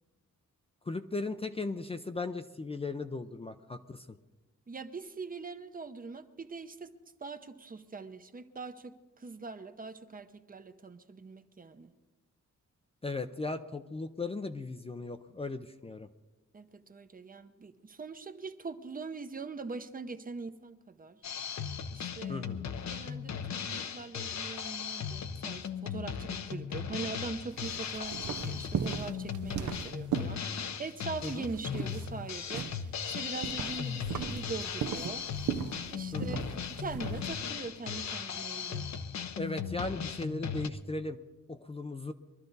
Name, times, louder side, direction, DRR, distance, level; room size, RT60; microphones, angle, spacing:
voice 1, 0.8-4.2 13.0-16.1 22.3-22.7 31.2-31.5 36.1-36.5 39.4-41.2 41.5-42.1, left 3 dB, 20° left, 8 dB, 0.5 m, -37 dB
voice 2, 4.7-6.9 7.2-11.9 16.5-21.2 21.9-22.5 22.9-35.2 35.9-38.9, right 4 dB, 30° right, 9 dB, 0.7 m, -42 dB
Drum kit, 21.2-40.7, left 7 dB, 65° left, 0.8 m, -37 dB
sound 1, 27.5-30.9 31.2-37.5, right 8 dB, 75° right, 0.7 m, -38 dB
22.5 x 12.5 x 4.0 m, 1.1 s
wide cardioid pair, 155°, 30 cm